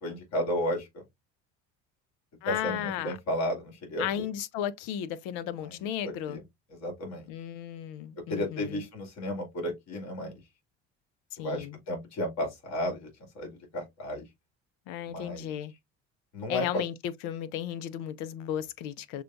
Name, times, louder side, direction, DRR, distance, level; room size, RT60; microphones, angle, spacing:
voice 1, 0.0-0.9 2.5-4.2 5.6-5.8 6.0-6.4 6.8-7.3 8.3-10.4 11.4-13.1 13.3-14.2 15.0-15.5 16.3-16.8, equal, 55° left, 2.4 m, -33 dB
voice 2, 2.4-3.2 4.0-6.4 7.3-8.8 11.3-11.8 14.9-15.7 16.5-19.2, left 10 dB, 75° left, 0.6 m, -34 dB
6.5 x 2.3 x 2.5 m
supercardioid pair, 95°, 31 cm